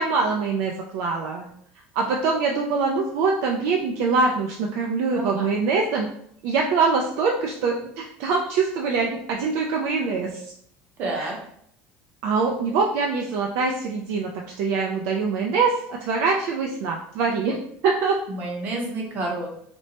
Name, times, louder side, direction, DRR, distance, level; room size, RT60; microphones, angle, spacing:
voice 1, 0.0-1.5 2.0-6.1 6.4-10.4 11.1-11.3 12.2-14.3 14.6-15.7 16.0-17.6 17.8-18.2, right 4 dB, 65° right, 0 dB, 0.4 m, -23 dB
voice 2, 5.1-5.5 11.0-11.3 18.3-19.5, right 2 dB, 40° right, 0 dB, 0.8 m, -29 dB
4.3 x 2.1 x 2.8 m, 0.68 s
cardioid pair, 170°, 5 cm